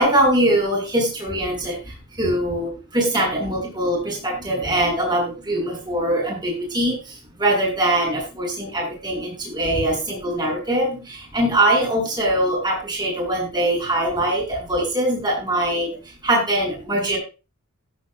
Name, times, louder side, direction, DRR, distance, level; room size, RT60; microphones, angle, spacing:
voice 1, 0.0-17.2, right 1 dB, 20° right, -2 dB, 8.0 m, -22 dB
16.5 x 11.0 x 2.3 m, 0.31 s
head